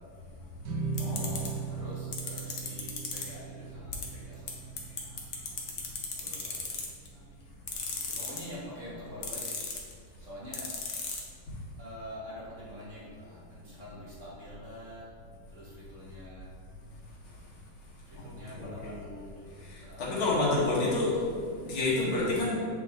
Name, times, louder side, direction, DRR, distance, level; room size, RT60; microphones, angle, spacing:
sound 1, 0.6-7.1, right 5 dB, 75° right, 1.8 m, -39 dB
voice 1, 1.0-1.6 17.2-17.4 18.2-18.9 19.6-22.5, left 2 dB, 75° left, -6 dB, 2.4 m, -30 dB
sound 2, 1.0-1.5 2.1-3.2 3.9-4.0 4.5-4.6 4.8-7.1 7.7-8.5 9.2-9.9 10.5-11.2, left 6 dB, 55° left, 1.1 m, -34 dB
voice 2, 1.7-4.0 4.2-4.3 6.2-6.6 8.1-9.5 10.3-10.7 11.8-13.4 13.8-15.0 15.5-15.6 15.9-16.5 18.2-19.3 20.1-20.5, equal, 40° right, -7 dB, 1.5 m, -44 dB
7.9 x 4.3 x 3.6 m, 2.1 s
omnidirectional pair, 2.2 m